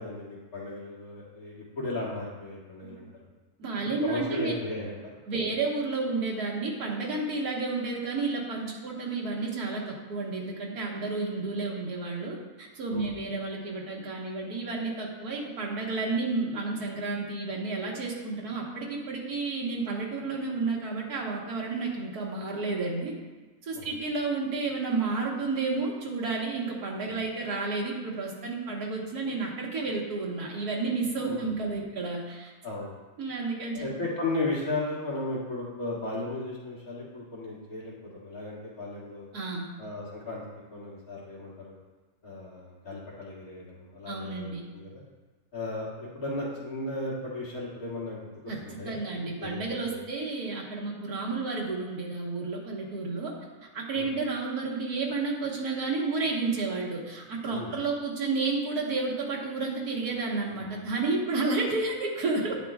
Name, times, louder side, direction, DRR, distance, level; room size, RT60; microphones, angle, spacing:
voice 1, 0.0-3.1 3.8-5.0 12.9-13.1 23.7-23.9 31.2-31.5 32.6-32.9 33.7-37.9 38.2-39.3 39.8-40.4 40.7-41.8 42.2-45.0 45.5-48.3 48.6-49.0 49.4-49.6 49.9-50.0 53.9-54.1 57.5-57.7 61.5-61.6, left 2 dB, 70° left, -6 dB, 2.8 m, -35 dB
voice 2, 3.6-4.5 5.3-23.1 23.6-32.5 33.2-33.8 39.3-39.7 44.1-44.7 48.5-53.3 53.7-62.6, right 3 dB, 90° right, -2 dB, 2.0 m, -31 dB
10.5 x 9.1 x 2.4 m, 1.3 s
omnidirectional pair, 1.6 m